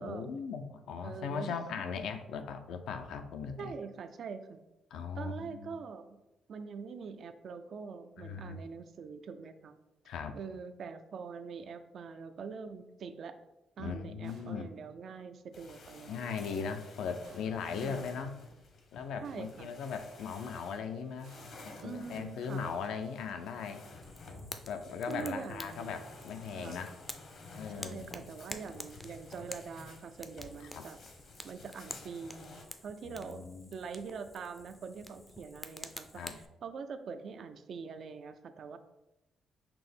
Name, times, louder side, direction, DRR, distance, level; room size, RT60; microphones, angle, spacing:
voice 1, 0.0-3.7 4.9-5.8 8.2-8.6 10.1-10.4 13.8-14.7 16.1-18.4 18.9-21.3 21.6-23.8 24.7-26.9 27.6-28.1 30.7-30.9 33.0-33.7 36.1-36.4, left 6 dB, 80° left, 7 dB, 0.4 m, -39 dB
voice 2, 1.0-1.6 3.6-4.6 5.1-6.2 6.5-9.7 10.3-13.4 13.8-16.3 17.8-18.0 19.2-19.7 21.8-22.8 25.1-25.9 26.5-26.8 27.8-31.0 31.4-32.6 32.8-36.2 36.6-38.8, right 5 dB, 60° right, 10 dB, 0.3 m, -44 dB
sound 1, 14.2-15.0 17.2-18.0 19.2-20.0 21.2-22.5, right 2 dB, 85° right, 1.0 m, -61 dB
sound 2, 15.5-32.7, left 3 dB, 65° left, 0.9 m, -52 dB
Fire, 24.0-36.5, left 1 dB, 10° left, 0.4 m, -49 dB
5.8 x 2.0 x 3.3 m, 0.95 s
cardioid pair, 90°, 0 cm